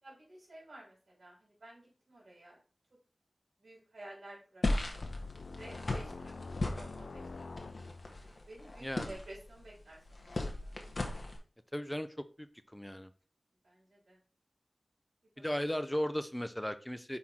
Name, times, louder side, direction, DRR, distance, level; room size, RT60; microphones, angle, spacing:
voice 1, 0.0-2.6 3.6-4.8 5.5-6.3 6.6-7.9 8.5-10.3 10.6-10.7 13.6-14.2 15.3-15.4, right 1 dB, 70° right, -5 dB, 3.3 m, -52 dB
sound 1, 4.6-11.4, left 2 dB, 55° left, 1.4 m, -37 dB
sound 2, 5.0-8.3, left 3 dB, 80° left, 0.3 m, -46 dB
voice 2, 8.8-9.1 11.7-12.5 12.7-13.1 15.4-17.2, equal, 10° left, 12 dB, 0.6 m, -36 dB
5.7 x 4.4 x 4.3 m, 0.38 s
wide cardioid pair, 45°, 0 cm